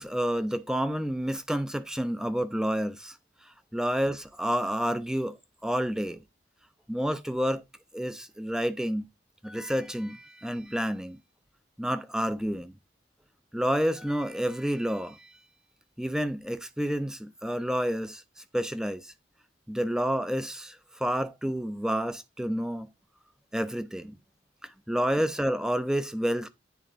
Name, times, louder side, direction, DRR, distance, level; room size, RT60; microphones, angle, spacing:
voice 1, 0.0-3.2 3.7-5.4 5.6-6.2 6.9-7.6 7.9-9.1 9.4-11.2 11.8-12.7 13.5-15.4 16.0-19.1 19.7-22.9 23.5-24.2 24.6-26.5, equal, 5° right, 0.4 m, -29 dB
9.5 x 4.0 x 2.4 m
head